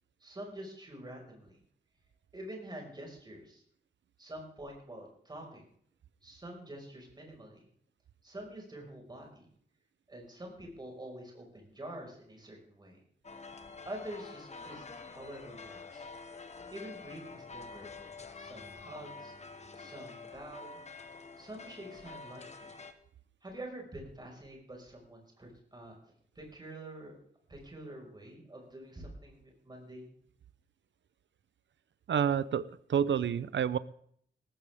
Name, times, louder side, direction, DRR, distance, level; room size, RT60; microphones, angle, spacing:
voice 1, 0.2-1.6 2.3-3.6 4.2-5.6 6.2-7.7 8.2-9.5 10.1-13.0 13.9-16.1 16.7-17.9 18.4-19.4 19.8-20.8 21.4-22.7 23.4-25.9 26.4-27.2 27.5-30.1, right 1 dB, 25° right, 0 dB, 5.4 m, -46 dB
sound 1, 13.2-22.9, left 4 dB, 35° left, 1.2 m, -48 dB
voice 2, 32.1-33.8, right 8 dB, 80° right, 17 dB, 0.7 m, -29 dB
18.5 x 14.5 x 3.6 m, 0.63 s
wide cardioid pair, 180°, 19 cm